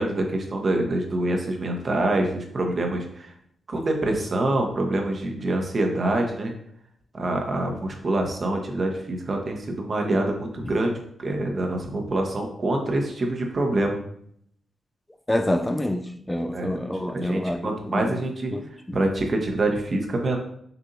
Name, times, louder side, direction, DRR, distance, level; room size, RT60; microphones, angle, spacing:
voice 1, 0.0-3.3 3.7-6.5 7.1-14.0 16.5-16.7 17.1-18.5 18.9-20.4, right 2 dB, 50° right, 1.0 m, -25 dB
voice 2, 15.3-18.2 18.5-18.6, left 1 dB, 15° left, 0.4 m, -27 dB
6.7 x 2.7 x 2.7 m
supercardioid pair, 45°, 0 cm